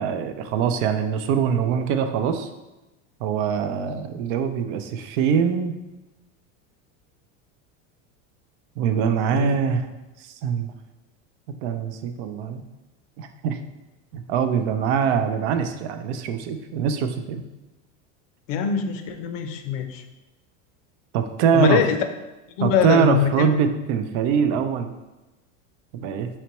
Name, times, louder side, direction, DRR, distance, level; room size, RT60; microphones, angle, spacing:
voice 1, 0.0-2.5 3.2-5.8 8.8-9.9 10.4-10.7 11.6-12.6 13.2-13.6 14.1-17.4 21.1-21.8 22.6-24.9 25.9-26.3, right 7 dB, 65° right, 8 dB, 0.6 m, -23 dB
voice 2, 18.5-20.0 21.5-22.0 22.6-23.5, left 8 dB, 75° left, 7 dB, 0.7 m, -23 dB
4.4 x 4.0 x 3.0 m, 1.1 s
supercardioid pair, 135°, 39 cm